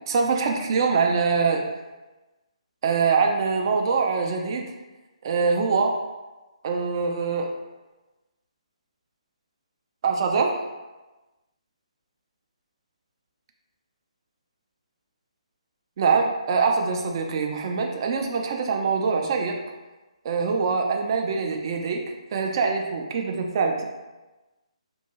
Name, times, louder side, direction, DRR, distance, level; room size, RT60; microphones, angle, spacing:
voice 1, 0.1-1.7 2.8-4.7 5.2-6.0 6.6-7.5 10.0-10.6 16.0-19.5 20.2-22.0 22.3-23.8, right 5 dB, 40° right, 3 dB, 0.4 m, -24 dB
2.7 x 2.2 x 3.0 m, 1.1 s
figure-of-eight pair, 140°, 4 cm